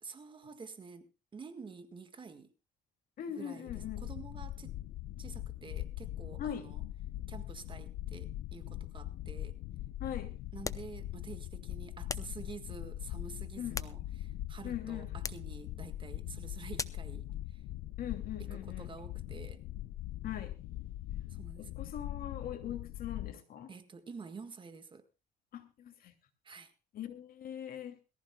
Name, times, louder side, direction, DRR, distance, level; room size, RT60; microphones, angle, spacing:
voice 1, 0.0-2.5 3.4-4.8 5.2-6.8 7.3-9.6 10.5-17.6 18.5-19.6 21.3-21.7 23.7-25.1 26.4-26.7, right 5 dB, 30° right, 1.7 m, -49 dB
voice 2, 3.2-4.0 6.4-6.7 10.0-10.3 13.6-13.8 14.6-15.1 18.0-18.9 20.2-20.5 21.6-23.7 25.5-26.1 26.9-28.0, left 9 dB, 60° left, 2.7 m, -41 dB
sound 1, 3.7-23.3, left 14 dB, 80° left, 0.8 m, -42 dB
sound 2, 10.6-11.0 12.1-12.4 13.5-14.4 15.2-15.5 16.8-17.1, left 4 dB, 20° left, 0.7 m, -40 dB
23.0 x 14.5 x 2.3 m
cardioid pair, 110°, 17 cm